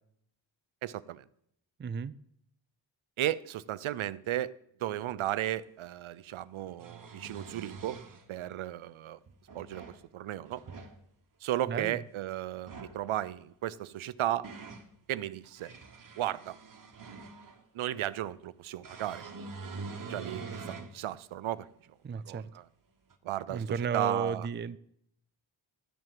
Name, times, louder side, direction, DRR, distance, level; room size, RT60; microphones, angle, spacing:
voice 1, 0.8-1.2 3.2-4.5 4.8-8.0 8.3-9.2 9.5-9.8 10.1-10.6 11.4-14.5 15.1-15.7 16.2-16.6 17.7-19.2 19.7-21.7 22.2-22.7 23.2-24.5, right 13 dB, 75° right, 0.6 m, -34 dB
voice 2, 1.8-2.1 11.7-12.0 22.0-22.5 23.5-24.8, right 6 dB, 25° right, 0.4 m, -33 dB
sound 1, 5.6-5.7 6.6-8.2 9.3-10.0 10.5-10.9 12.5-13.0 13.9-14.9 15.4-17.6 18.8-20.9 21.5-21.6 23.1-23.2, right 4 dB, 40° right, 1.4 m, -45 dB
11.5 x 7.8 x 7.6 m
cardioid pair, 80°, 48 cm